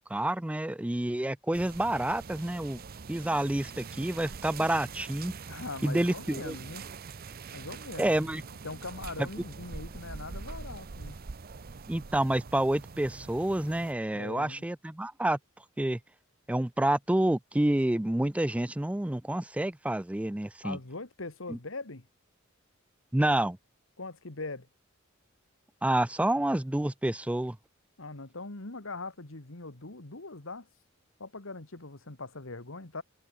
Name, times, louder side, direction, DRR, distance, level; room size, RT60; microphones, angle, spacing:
voice 1, 0.1-2.8 3.1-5.3 5.8-6.6 8.0-8.4 9.2-9.3 11.9-15.4 15.8-16.0 16.5-20.8 21.5-21.6 23.1-23.6 25.8-27.6, right 1 dB, 5° right, 0.4 m, -28 dB
sound 1, 1.5-13.9, right 4 dB, 45° right, 0.7 m, -44 dB
voice 2, 5.5-6.8 7.5-8.4 8.6-11.2 14.1-14.6 20.6-22.1 24.0-24.7 28.0-30.7 31.2-33.0, left 3 dB, 70° left, 2.0 m, -41 dB
head